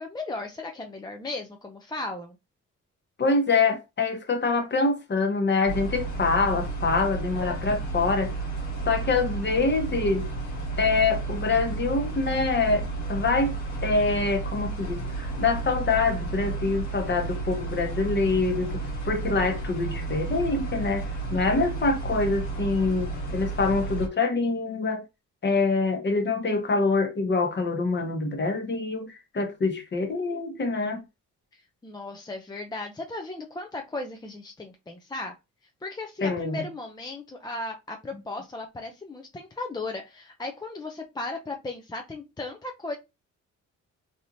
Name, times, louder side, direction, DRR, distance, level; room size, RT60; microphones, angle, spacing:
voice 1, 0.0-2.4 31.5-35.3 35.8-43.0, left 2 dB, 15° left, 0.5 m, -36 dB
voice 2, 3.2-8.3 8.9-10.3 10.8-21.0 21.3-25.0 25.4-31.0 36.2-36.6, left 3 dB, 35° left, 1.0 m, -25 dB
sound 1, 5.7-24.1, right 3 dB, 75° left, 1.5 m, -32 dB
3.3 x 2.9 x 2.6 m
cardioid pair, 90°, 30 cm